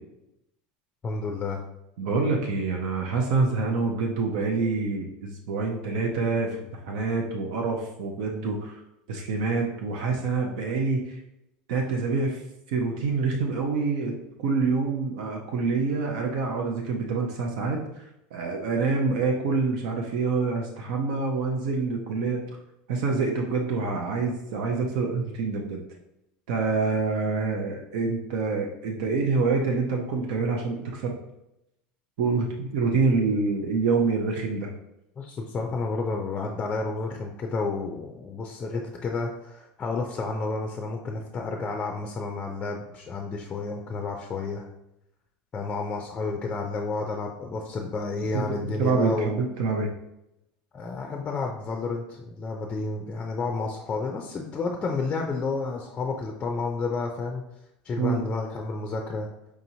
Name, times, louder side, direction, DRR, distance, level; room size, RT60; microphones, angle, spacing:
voice 1, 1.0-1.6 35.2-44.7 45.5-49.4 50.7-57.4 57.8-59.3, left 3 dB, 25° left, 2 dB, 0.4 m, -31 dB
voice 2, 2.0-8.8 9.1-11.2 11.7-12.4 12.7-14.1 14.4-17.8 18.3-22.4 22.9-25.8 26.5-31.2 32.2-34.7 48.3-49.9 58.0-58.2, right 4 dB, 80° right, 1 dB, 0.6 m, -26 dB
4.7 x 2.9 x 2.7 m, 0.85 s
supercardioid pair, 125°, 4 cm